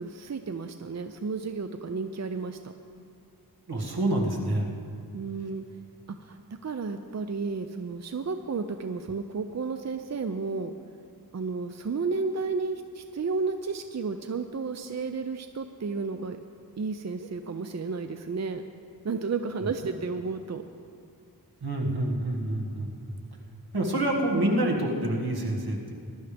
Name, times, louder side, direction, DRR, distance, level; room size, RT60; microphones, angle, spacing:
voice 1, 0.0-2.6 5.1-5.6 6.1-10.7 11.3-16.4 16.8-18.6 19.0-20.6 24.3-24.5, right 4 dB, 45° right, 7 dB, 0.5 m, -32 dB
voice 2, 3.7-4.7 21.6-23.2 23.7-25.9, right 1 dB, 75° right, -1 dB, 2.0 m, -27 dB
20.5 x 12.0 x 3.5 m, 2.4 s
wide cardioid pair, 80°, 38 cm